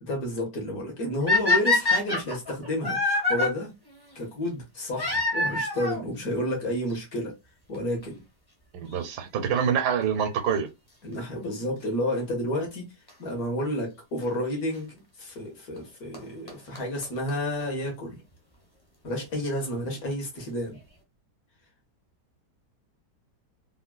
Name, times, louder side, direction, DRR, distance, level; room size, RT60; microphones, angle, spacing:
voice 1, 0.0-3.7 4.1-7.3 7.7-8.1 11.0-12.9 13.2-18.1 19.0-20.8, left 1 dB, 60° left, 1.6 m, -30 dB
sound 1, 1.3-3.5 5.0-6.0 7.0-7.1 7.7-7.8 8.0-8.1 10.0-10.3 13.1-13.2 14.2-14.3 15.8-15.9 16.1-16.2 16.5-16.6 16.8-16.9 17.0-17.1 17.3-17.4 17.6-17.7, left 3 dB, 20° left, 0.6 m, -24 dB
voice 2, 8.7-10.7, right 7 dB, 80° right, 1.2 m, -26 dB
3.7 x 2.2 x 2.2 m
omnidirectional pair, 1.8 m